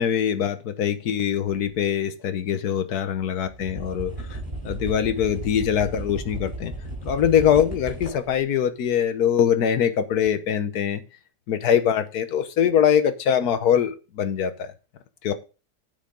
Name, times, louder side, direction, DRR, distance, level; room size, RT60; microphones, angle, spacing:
voice 1, 0.0-6.7 7.1-11.0 11.5-14.7 15.2-15.3, left 9 dB, 70° left, 10 dB, 1.5 m, -23 dB
sound 1, 1.4-1.7 3.1-3.2 3.4-8.4 10.2-10.3, right 2 dB, 25° right, 4.8 m, -35 dB
9.0 x 7.5 x 3.9 m, 0.32 s
omnidirectional pair, 1.8 m